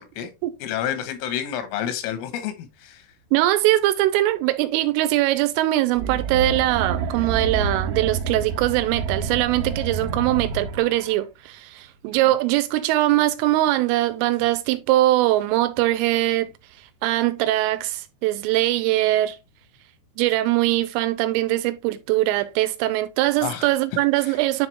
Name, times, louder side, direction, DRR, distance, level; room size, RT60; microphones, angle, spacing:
voice 1, 0.0-0.3 0.6-3.1 23.4-24.4, left 10 dB, 90° left, 3.8 m, -30 dB
voice 2, 3.3-16.5 17.0-19.4 20.2-24.7, right 16 dB, 85° right, 3.2 m, -21 dB
sound 1, 5.9-11.2, right 5 dB, 65° right, 2.5 m, -28 dB
10.5 x 3.8 x 3.2 m
omnidirectional pair, 5.7 m